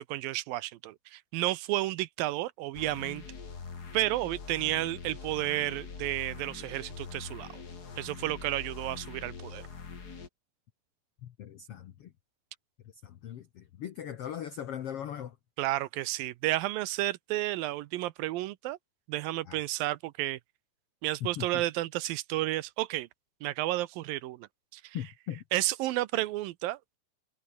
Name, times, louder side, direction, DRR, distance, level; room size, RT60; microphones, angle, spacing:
voice 1, 0.0-3.2 3.9-7.6 8.0-9.6 15.6-18.8 19.1-20.4 21.0-23.1 23.4-24.5 24.7-25.0 25.5-27.0, right 16 dB, 80° right, 2.4 m, -32 dB
sound 1, 2.7-10.3, left 5 dB, 30° left, 2.2 m, -44 dB
voice 2, 11.2-12.1 13.0-15.3 19.5-19.6 21.4-21.6 24.9-25.4, left 10 dB, 75° left, 1.3 m, -39 dB
omnidirectional pair, 4.3 m